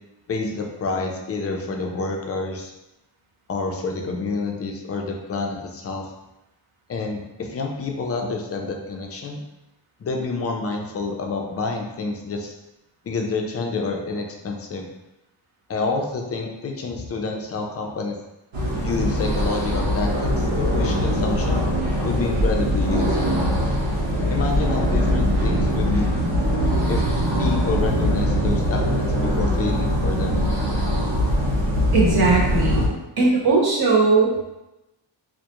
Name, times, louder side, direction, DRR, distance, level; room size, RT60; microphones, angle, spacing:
voice 1, 0.3-2.7 3.5-6.1 6.9-9.4 10.0-12.5 13.0-14.9 15.7-18.2 18.8-21.6 22.0-23.4 24.3-26.1 26.9-27.0 27.4-30.4, left 3 dB, 35° left, 1 dB, 0.4 m, -28 dB
sound 1, 18.5-32.9, equal, 85° right, 0.8 m, -22 dB
voice 2, 31.9-32.8 33.2-34.4, right 3 dB, 55° right, -4 dB, 0.8 m, -18 dB
2.3 x 2.1 x 2.8 m, 0.96 s
cardioid pair, 110°, 46 cm